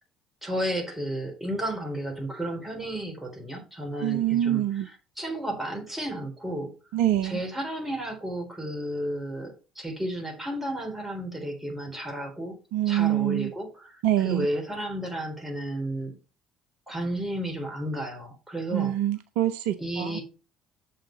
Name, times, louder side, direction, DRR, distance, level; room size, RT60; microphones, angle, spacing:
voice 1, 0.4-4.6 5.2-6.7 7.2-12.6 12.9-16.1 16.9-18.9 19.8-20.2, right 1 dB, 10° right, 3.7 m, -32 dB
voice 2, 4.0-4.9 6.9-7.4 12.7-13.5 14.0-14.5 18.7-20.2, right 12 dB, 65° right, 0.5 m, -25 dB
7.0 x 5.5 x 5.2 m
figure-of-eight pair, 55°, 2 cm